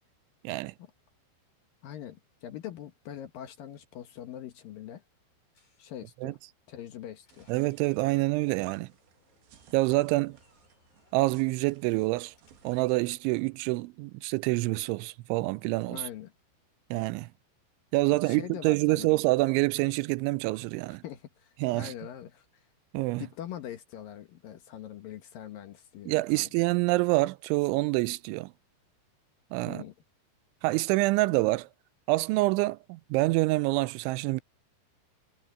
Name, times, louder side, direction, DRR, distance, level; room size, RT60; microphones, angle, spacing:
voice 1, 0.4-0.7 6.2-6.3 7.5-8.9 9.7-10.4 11.1-12.3 12.6-16.0 16.9-17.3 17.9-21.0 21.6-21.9 22.9-23.2 26.1-28.5 29.5-29.8 30.6-31.7 32.1-34.4, right 21 dB, 80° right, 2.8 m, -26 dB
voice 2, 1.8-5.0 5.8-6.4 6.7-7.5 8.2-8.3 15.9-16.3 18.2-19.1 20.9-22.5 23.2-26.5 29.7-29.9, left 11 dB, 70° left, 2.2 m, -43 dB
Door, 4.9-13.6, left 2 dB, 40° left, 8.7 m, -67 dB
sound 1, 7.3-13.1, right 9 dB, 65° right, 4.0 m, -58 dB
omnidirectional pair, 5.7 m